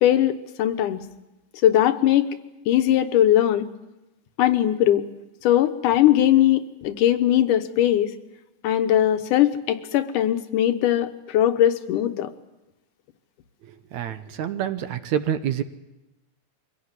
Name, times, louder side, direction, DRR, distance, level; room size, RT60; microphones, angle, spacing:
voice 1, 0.0-1.0 1.6-2.3 2.7-3.7 4.4-5.0 5.4-8.1 8.6-12.3, left 12 dB, 80° left, 8 dB, 2.6 m, -20 dB
voice 2, 13.7-15.6, right 9 dB, 70° right, 10 dB, 2.2 m, -27 dB
23.5 x 16.5 x 9.7 m, 0.99 s
omnidirectional pair, 3.7 m